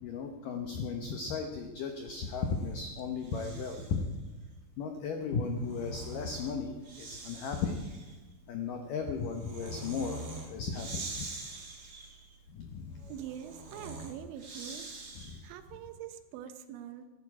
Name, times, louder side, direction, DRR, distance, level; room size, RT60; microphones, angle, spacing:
voice 1, 0.0-4.0 4.8-7.9 8.5-10.2 10.5-11.0 12.5-13.1 15.2-15.4, left 5 dB, 90° left, 4 dB, 1.8 m, -35 dB
Breathing, 2.1-4.1 5.3-15.6, right 2 dB, 50° right, 1.2 m, -45 dB
voice 2, 13.1-14.9 15.4-17.0, right 10 dB, 80° right, 9 dB, 3.1 m, -44 dB
16.5 x 14.5 x 4.8 m, 1.3 s
omnidirectional pair, 5.6 m